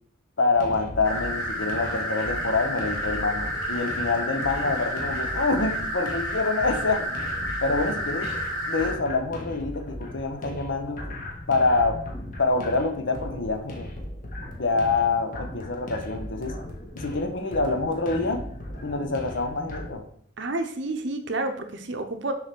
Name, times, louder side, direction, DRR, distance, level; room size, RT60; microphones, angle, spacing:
voice 1, 0.4-7.2 7.6-8.3 8.7-11.0 11.5-12.0 12.4-13.9 14.6-16.6 16.9-18.4 18.8-20.1, left 3 dB, 65° left, 6 dB, 0.9 m, -26 dB
sound 1, 0.5-19.9, left 1 dB, 40° left, 1.4 m, -38 dB
sound 2, 1.0-8.9, equal, 20° left, 2.3 m, -30 dB
voice 2, 20.4-22.3, right 2 dB, 65° right, 6 dB, 0.8 m, -30 dB
7.0 x 3.4 x 6.0 m, 0.63 s
head